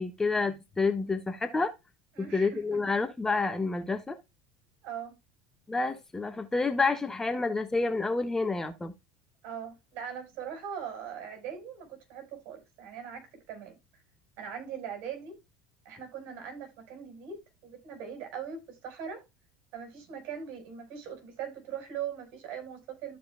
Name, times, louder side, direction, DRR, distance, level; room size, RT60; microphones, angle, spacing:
voice 1, 0.0-1.7 2.2-4.2 5.7-8.9, left 3 dB, 15° left, 1.3 m, -29 dB
voice 2, 2.1-2.8 4.8-5.1 9.4-13.8 14.4-15.4 15.8-19.2 19.7-23.2, right 8 dB, 60° right, 4.6 m, -40 dB
13.5 x 5.0 x 2.2 m
hypercardioid pair, 80°, 3 cm